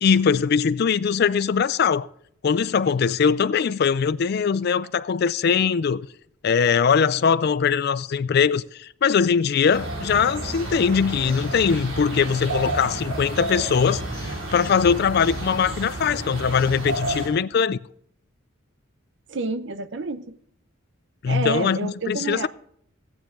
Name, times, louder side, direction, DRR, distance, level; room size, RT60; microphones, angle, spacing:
voice 1, 0.0-2.1 2.4-6.1 6.4-17.8 21.2-22.5, left 6 dB, 50° left, 0.4 m, -21 dB
sound 1, 9.7-17.3, right 1 dB, 80° right, 4.5 m, -31 dB
voice 2, 19.3-20.4 21.3-22.5, right 3 dB, 60° right, 0.7 m, -29 dB
16.0 x 8.7 x 3.8 m
head